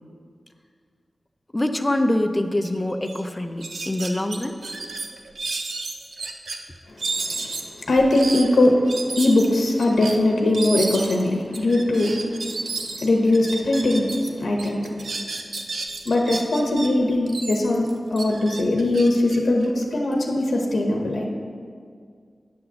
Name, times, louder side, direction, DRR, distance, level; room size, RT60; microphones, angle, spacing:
voice 1, 1.5-4.6, left 1 dB, 15° left, 7 dB, 0.5 m, -24 dB
sound 1, 2.7-2.8 3.0-3.2 3.6-6.6 7.0-14.3 14.6-16.9 17.3-20.1, right 3 dB, 80° right, 0.6 m, -32 dB
voice 2, 6.9-12.2 12.7-14.9 16.0-21.3, left 1 dB, 85° left, 1 dB, 0.9 m, -21 dB
9.5 x 3.9 x 6.7 m, 2.2 s
wide cardioid pair, 105°, 0 cm